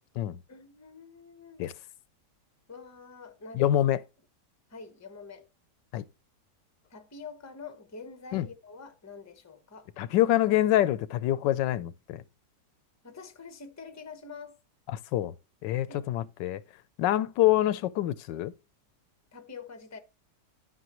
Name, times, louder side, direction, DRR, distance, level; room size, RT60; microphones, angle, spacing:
voice 1, 0.5-1.7 2.7-3.7 4.7-5.5 6.9-9.9 13.0-14.6 15.8-16.0 17.0-17.1 19.3-20.0, left 5 dB, 15° left, 0.7 m, -46 dB
voice 2, 3.5-4.0 5.9-6.0 8.3-8.5 10.0-12.2 14.9-15.3 15.6-16.6 17.0-18.5, left 13 dB, 90° left, 1.3 m, -26 dB
12.0 x 6.1 x 3.0 m
omnidirectional pair, 1.9 m